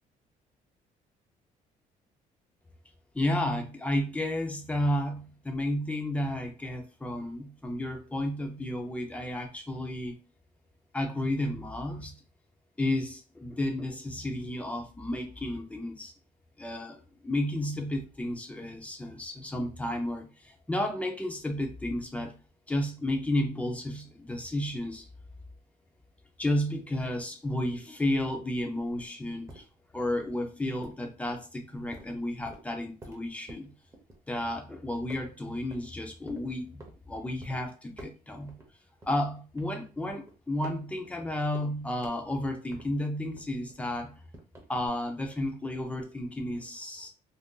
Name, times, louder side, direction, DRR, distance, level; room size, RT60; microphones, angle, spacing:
voice 1, 3.1-10.2 10.9-12.2 12.8-16.1 16.6-22.4 22.7-25.1 26.4-29.6 29.9-33.7 34.3-38.6 39.0-44.2 44.7-47.1, left 1 dB, 10° left, 3 dB, 0.6 m, -32 dB
sound 1, 28.8-34.7 35.1-35.9 36.3-37.0 37.4-37.6 37.9-38.7 39.0-43.1 43.4-44.9, right 1 dB, 20° right, 0.8 m, -51 dB
2.6 x 2.1 x 3.7 m, 0.34 s
cardioid pair, 120°, 15 cm